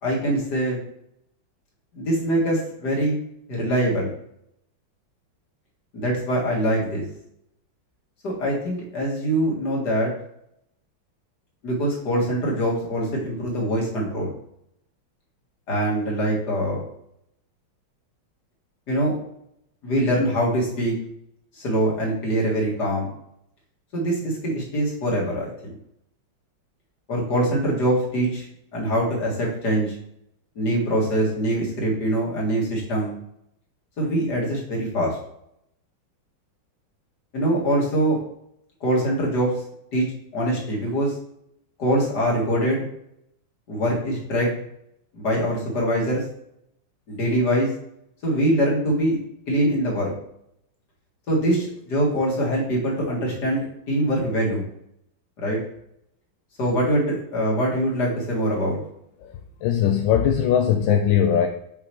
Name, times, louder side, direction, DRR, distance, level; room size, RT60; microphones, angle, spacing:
voice 1, 0.0-0.8 1.9-3.2 3.5-4.1 5.9-7.0 8.2-10.1 11.6-14.3 15.7-16.8 18.9-19.1 19.8-20.9 21.5-23.1 23.9-25.5 27.1-28.5 28.7-30.0 30.6-33.1 34.0-35.2 37.3-38.2 38.8-39.5 39.9-40.0 40.3-41.1 41.8-42.8 43.7-44.5 45.1-46.2 47.1-47.7 48.2-49.2 49.5-50.1 51.3-54.7 55.4-55.6 56.6-58.8, right 1 dB, 55° left, -3 dB, 2.4 m, -23 dB
voice 2, 59.6-61.5, left 9 dB, 75° left, 5 dB, 1.2 m, -20 dB
6.8 x 5.3 x 2.9 m, 0.76 s
omnidirectional pair, 2.3 m